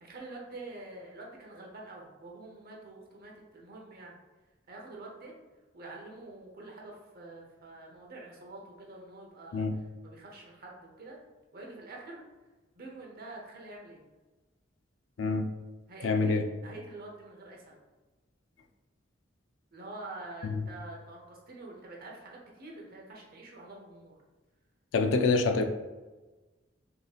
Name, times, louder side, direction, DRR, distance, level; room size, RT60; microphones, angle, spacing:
voice 1, 0.0-4.2 4.7-5.3 5.7-9.7 10.0-11.2 11.5-12.2 12.7-14.1 15.9-17.8 19.7-24.2, right 2 dB, 50° right, -1 dB, 0.9 m, -46 dB
voice 2, 16.0-16.4 20.4-20.6 24.9-25.6, left 3 dB, 75° left, 7 dB, 0.4 m, -26 dB
5.1 x 2.9 x 2.4 m, 1.2 s
head